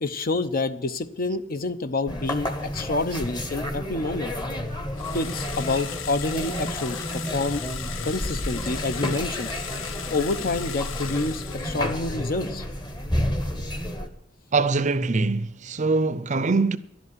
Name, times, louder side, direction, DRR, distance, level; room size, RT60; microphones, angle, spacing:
voice 1, 0.0-4.3 5.1-7.6 8.0-9.5 10.1-12.6 13.6-13.7, left 2 dB, 50° left, 0.8 m, -28 dB
sound 1, 2.1-14.1, equal, 25° left, 1.2 m, -31 dB
sound 2, 5.0-12.3, left 9 dB, 85° left, 0.6 m, -37 dB
voice 2, 14.5-16.8, right 3 dB, 40° right, 0.6 m, -23 dB
11.5 x 8.1 x 9.6 m
head